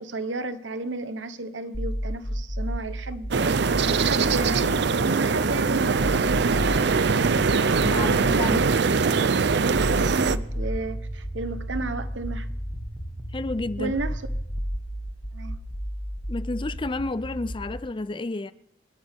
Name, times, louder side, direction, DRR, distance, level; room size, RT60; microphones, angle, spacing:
voice 1, 0.0-3.6 4.0-8.9 9.8-12.5 13.8-14.2 15.3-15.6, right 3 dB, 80° right, 1.1 m, -33 dB
sound 1, 1.7-17.7, equal, 45° left, 1.9 m, -32 dB
sound 2, 3.3-10.4, right 5 dB, 65° right, 0.6 m, -22 dB
sound 3, 7.2-14.6, right 1 dB, 5° right, 1.2 m, -41 dB
voice 2, 7.8-8.7 13.3-13.9 16.3-18.5, left 2 dB, 25° left, 0.5 m, -30 dB
28.5 x 10.5 x 3.6 m
head